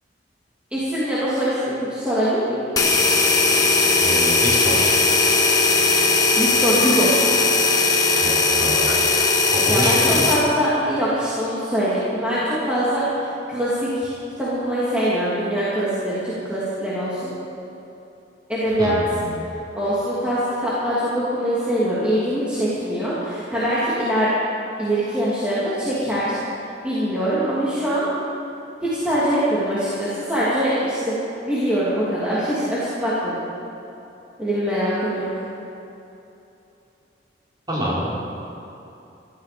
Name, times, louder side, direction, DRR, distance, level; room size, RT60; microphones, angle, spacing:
voice 1, 0.7-2.6 6.4-7.1 9.7-14.1 14.4-17.3 18.5-19.0 19.7-24.3 24.8-28.1 28.8-31.2 31.4-33.4 34.4-35.4, equal, 5° right, -11 dB, 2.7 m, -23 dB
sound 1, 2.8-10.5, left 3 dB, 20° left, 1.5 m, -18 dB
voice 2, 4.0-4.9 8.2-9.0 9.5-10.2 18.8-19.3 37.7-38.1, equal, 20° right, -7 dB, 4.3 m, -26 dB
17.5 x 13.5 x 5.2 m, 2.9 s
head